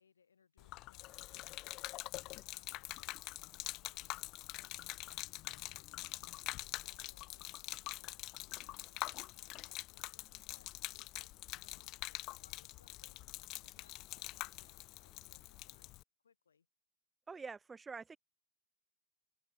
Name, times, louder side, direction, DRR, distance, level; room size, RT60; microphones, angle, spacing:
voice 1, 0.0-15.9 16.2-16.7, left 6 dB, 70° left, 5.8 m, -71 dB
Gurgling / Liquid, 0.6-16.0, left 19 dB, 40° left, 0.8 m, -45 dB
voice 2, 17.3-18.2, right 4 dB, 15° right, 0.7 m, -46 dB
open air
figure-of-eight pair, 90°, 0 cm